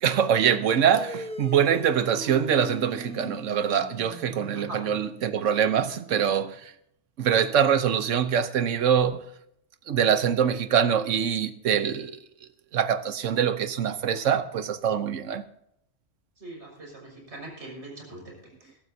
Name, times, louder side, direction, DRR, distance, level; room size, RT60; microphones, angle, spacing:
voice 1, 0.0-6.6 7.2-9.2 9.9-12.2 12.7-15.4, right 8 dB, 85° right, 1.2 m, -24 dB
sound 1, 0.9-5.8, equal, 5° left, 0.8 m, -41 dB
voice 2, 16.4-18.8, right 2 dB, 65° right, 6.4 m, -42 dB
22.0 x 12.0 x 2.8 m
omnidirectional pair, 1.3 m